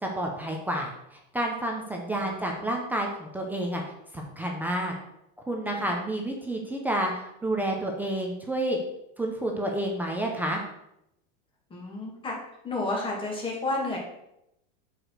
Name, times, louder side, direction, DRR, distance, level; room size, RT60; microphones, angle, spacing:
voice 1, 0.0-3.8 4.1-4.9 5.5-8.8 9.2-10.6, right 1 dB, 5° right, 0 dB, 0.5 m, -30 dB
voice 2, 2.2-2.7 5.8-6.0 11.7-12.3 12.6-14.0, left 2 dB, 15° left, -2 dB, 2.0 m, -31 dB
7.6 x 5.0 x 6.3 m, 0.82 s
supercardioid pair, 170°, 39 cm